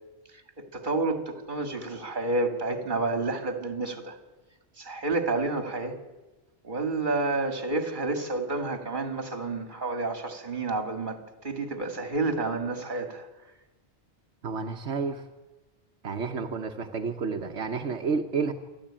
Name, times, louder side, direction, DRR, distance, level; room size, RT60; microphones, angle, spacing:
voice 1, 0.6-4.2 4.8-6.0 6.6-13.3, right 2 dB, 45° right, 7 dB, 2.3 m, -30 dB
voice 2, 14.4-15.2 16.0-18.5, right 5 dB, 85° right, 4 dB, 1.4 m, -30 dB
27.5 x 11.5 x 8.8 m, 1.1 s
omnidirectional pair, 1.1 m